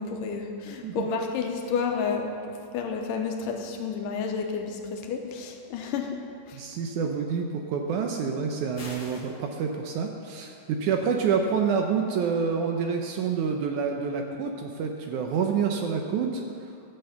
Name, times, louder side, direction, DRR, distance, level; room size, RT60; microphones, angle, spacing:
voice 1, 0.0-6.2 6.5-6.6, left 5 dB, 75° left, 3 dB, 2.3 m, -31 dB
voice 2, 6.5-16.4, right 6 dB, 75° right, 3 dB, 1.9 m, -28 dB
sound 1, 8.8-9.4, left 2 dB, 55° left, 0.8 m, -42 dB
13.5 x 6.9 x 7.0 m, 2.5 s
omnidirectional pair, 4.1 m